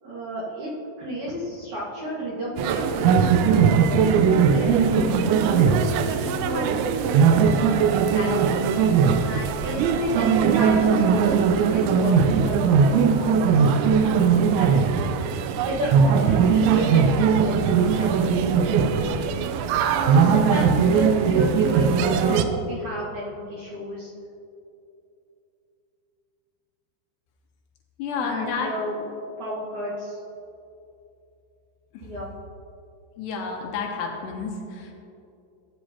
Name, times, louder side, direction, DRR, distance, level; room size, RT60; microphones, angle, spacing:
voice 1, 0.0-4.0 4.5-8.6 9.2-15.1 15.6-19.2 19.9-24.1 28.1-28.9 29.4-30.2 32.0-32.3, right 1 dB, 55° right, -8 dB, 2.3 m, -32 dB
sound 1, 2.6-22.5, right 6 dB, 90° right, 2.9 m, -20 dB
voice 2, 28.0-28.7 31.9-32.1 33.2-34.9, left 5 dB, 75° left, 1 dB, 2.9 m, -30 dB
15.0 x 9.3 x 2.9 m, 2.7 s
omnidirectional pair, 5.2 m